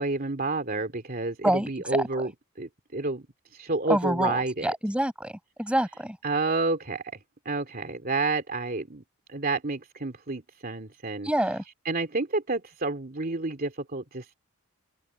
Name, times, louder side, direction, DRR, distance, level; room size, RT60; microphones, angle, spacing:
voice 1, 0.0-2.3 2.6-3.3 3.5-4.7 6.2-7.0 7.4-9.0 9.3-11.3 11.8-14.3, right 3 dB, 45° right, 2.7 m, -29 dB
voice 2, 1.4-2.0 3.9-5.3 5.6-6.2 11.2-11.6, right 1 dB, 5° right, 5.5 m, -26 dB
head